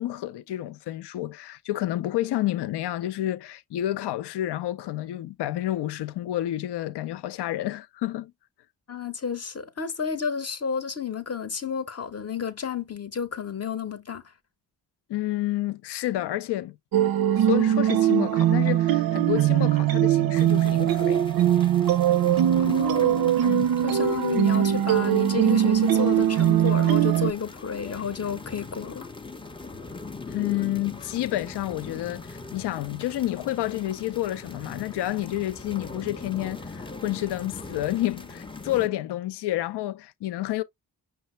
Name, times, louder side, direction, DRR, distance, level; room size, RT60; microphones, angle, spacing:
voice 1, 0.0-8.3 15.1-16.8 17.3-21.2 23.4-23.7 30.3-40.6, left 14 dB, 70° left, 0.5 m, -29 dB
voice 2, 8.9-14.2 22.6-23.4 23.8-29.1, left 6 dB, 35° left, 0.8 m, -31 dB
sound 1, 16.9-27.3, right 11 dB, 55° right, 0.5 m, -21 dB
sound 2, 20.3-38.9, left 3 dB, 10° left, 0.5 m, -41 dB
5.5 x 2.1 x 4.3 m
cardioid pair, 50°, 43 cm